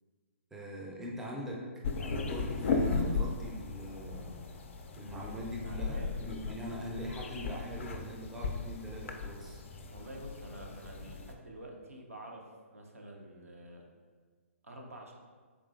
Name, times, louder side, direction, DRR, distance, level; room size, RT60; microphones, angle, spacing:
voice 1, 0.5-4.5 4.9-9.6, equal, 5° right, -3 dB, 0.4 m, -42 dB
sound 1, 1.8-11.3, left 4 dB, 60° left, 0.4 m, -36 dB
voice 2, 5.2-6.1 9.9-12.4 12.7-13.8 14.6-15.1, right 1 dB, 85° right, 0 dB, 0.6 m, -48 dB
3.7 x 3.0 x 2.4 m, 1.5 s
figure-of-eight pair, 125°, 8 cm